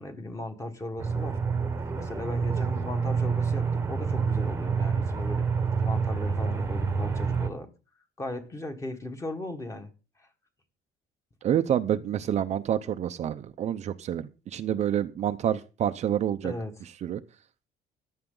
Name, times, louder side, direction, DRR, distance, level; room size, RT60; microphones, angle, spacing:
voice 1, 0.0-1.4 1.9-5.5 5.8-7.7 8.2-9.9 16.4-16.7, left 1 dB, 15° left, 1.6 m, -37 dB
Aircraft, 1.0-7.5, right 5 dB, 15° right, 1.1 m, -28 dB
voice 2, 11.4-16.5 17.0-17.2, right 10 dB, 40° right, 0.6 m, -28 dB
15.0 x 11.5 x 3.9 m
cardioid pair, 180°, 18 cm